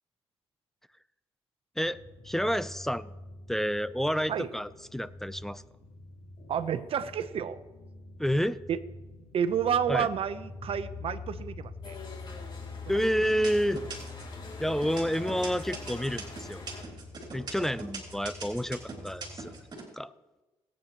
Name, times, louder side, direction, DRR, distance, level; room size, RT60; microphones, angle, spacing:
sound 1, 1.8-19.6, left 3 dB, 75° left, 3.6 m, -45 dB
voice 1, 2.2-3.1 3.5-5.6 8.2-8.6 9.9-10.1 12.9-13.8 14.6-16.6 17.3-19.5 19.9-20.1, equal, 5° left, 16 dB, 0.5 m, -29 dB
voice 2, 6.5-7.6 8.7-8.8 9.3-12.0 14.8-14.9, right 8 dB, 60° right, 12 dB, 0.8 m, -30 dB
sound 2, 11.8-16.8, left 3 dB, 45° left, 2.7 m, -46 dB
sound 3, 12.4-12.8 13.3-14.3 14.8-19.8, right 4 dB, 40° right, 3.4 m, -41 dB
20.5 x 9.1 x 3.0 m, 1.1 s
cardioid pair, 80°, 11 cm